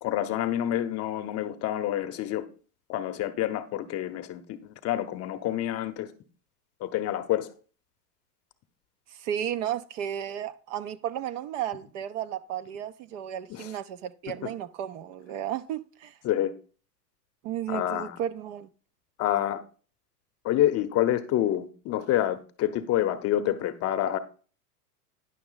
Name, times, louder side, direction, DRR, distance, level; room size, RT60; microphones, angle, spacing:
voice 1, 0.0-2.5 2.9-6.1 6.8-7.5 13.5-13.8 14.4-14.5 16.2-16.5 17.7-18.2 19.2-19.6 20.4-24.2, left 12 dB, 30° left, 0.8 m, -28 dB
voice 2, 9.2-16.1 17.4-18.7, right 10 dB, 50° right, 0.7 m, -33 dB
10.0 x 6.0 x 3.9 m
hypercardioid pair, 110°, 47 cm